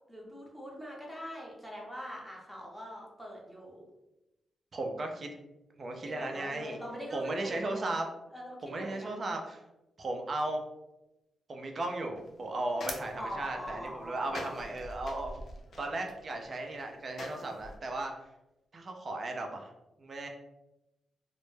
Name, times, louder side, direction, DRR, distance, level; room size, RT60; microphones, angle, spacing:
voice 1, 0.1-3.9 6.0-7.8 8.3-9.2 13.2-14.6, equal, ahead, -3 dB, 0.8 m, -43 dB
voice 2, 4.7-5.3 5.8-6.8 7.1-8.1 8.6-9.6 10.0-10.6 11.5-15.5 15.8-18.1 18.7-19.7 20.0-20.3, right 2 dB, 50° right, 3 dB, 0.4 m, -36 dB
sound 1, 12.2-17.8, left 2 dB, 65° left, 0.4 m, -45 dB
2.1 x 2.0 x 3.1 m, 0.95 s
cardioid pair, 70°, 0 cm